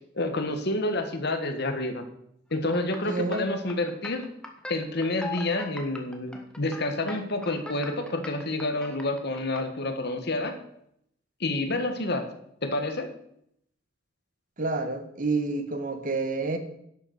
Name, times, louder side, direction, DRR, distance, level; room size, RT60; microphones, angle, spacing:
voice 1, 0.1-2.0 2.5-4.3 4.7-10.5 11.4-12.2 12.6-13.1, left 2 dB, 55° left, 7 dB, 1.5 m, -29 dB
sound 1, 2.5-9.6, left 3 dB, 5° left, 1.2 m, -40 dB
voice 2, 3.0-3.5 14.6-16.6, right 3 dB, 40° right, 8 dB, 1.2 m, -28 dB
11.5 x 6.7 x 6.5 m, 0.73 s
head